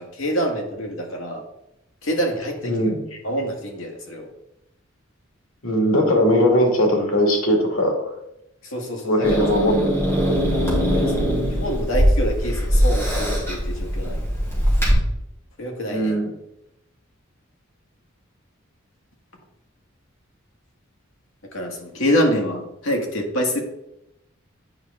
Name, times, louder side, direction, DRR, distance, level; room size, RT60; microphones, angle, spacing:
voice 1, 0.0-1.4 2.0-2.9 3.2-4.3 8.6-9.4 10.7-14.3 15.6-16.1 21.5-23.6, equal, 70° left, 1 dB, 1.6 m, -26 dB
voice 2, 2.6-3.0 5.6-8.1 9.0-9.9 15.9-16.2, equal, 90° left, 2 dB, 1.8 m, -19 dB
Growling / Hiss, 9.2-14.9, equal, 15° left, 2.5 m, -21 dB
8.8 x 5.3 x 3.5 m, 0.84 s
head